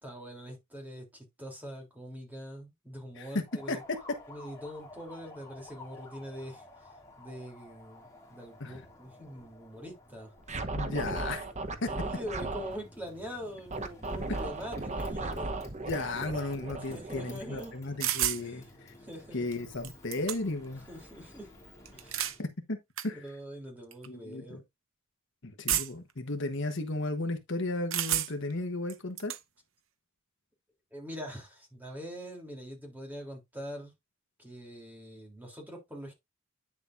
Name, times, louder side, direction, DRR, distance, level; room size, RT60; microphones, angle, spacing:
voice 1, 0.0-3.8 4.3-6.6 7.2-10.3 10.9-11.2 11.9-15.5 16.8-17.7 18.4-19.5 20.9-21.5 21.9-22.4 23.1-24.6 30.9-33.9 34.4-36.1, equal, 10° right, 3.4 m, -43 dB
Motorcycle, 3.4-22.4, left 1 dB, 15° left, 3.0 m, -53 dB
Scratching (performance technique), 10.4-12.8 13.7-18.0, right 2 dB, 35° right, 1.1 m, -36 dB
voice 2, 10.7-11.4 11.8-11.9 15.9-18.9 19.3-20.8 22.1-22.8 23.0-23.2 24.1-24.6 25.4-29.3, left 2 dB, 60° left, 1.3 m, -34 dB
sound 1, 18.0-18.4 19.5-19.6 19.8-20.7 21.9-22.4 23.0-23.1 23.9-24.1 25.7-26.1 27.9-28.5 28.9-29.4, right 12 dB, 65° right, 0.8 m, -31 dB
9.7 x 6.9 x 2.7 m
head